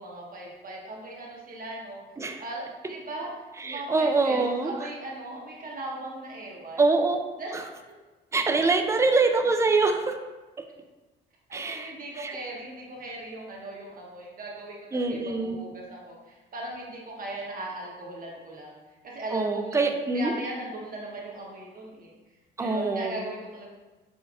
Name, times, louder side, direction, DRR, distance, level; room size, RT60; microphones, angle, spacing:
voice 1, 0.0-2.0 2.4-6.8 7.4-7.5 11.5-18.8 19.0-19.8 20.1-22.2 22.6-23.7, right 2 dB, 45° right, -3 dB, 1.0 m, -38 dB
voice 2, 3.6-4.9 6.8-7.2 7.5-7.6 8.3-10.2 11.5-12.4 14.9-15.6 19.3-20.3 22.6-23.2, right 3 dB, 15° right, 6 dB, 0.3 m, -25 dB
5.2 x 2.4 x 2.4 m, 1.2 s
cardioid pair, 90°, 20 cm